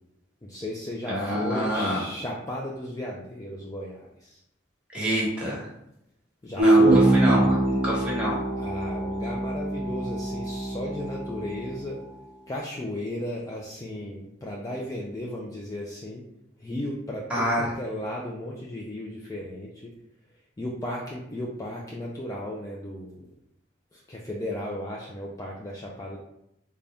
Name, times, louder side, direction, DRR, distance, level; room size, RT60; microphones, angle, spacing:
voice 1, 0.5-4.4 6.4-7.1 8.6-12.0 12.5-16.2 16.6-19.9 20.6-23.2 23.9-26.2, left 1 dB, 15° left, -3 dB, 0.3 m, -34 dB
voice 2, 1.1-2.0 4.9-5.7 6.6-8.4 17.3-17.7, equal, 5° right, -6 dB, 1.1 m, -27 dB
sound 1, 6.6-11.9, right 2 dB, 60° right, 0.7 m, -23 dB
3.8 x 2.2 x 3.4 m, 0.81 s
head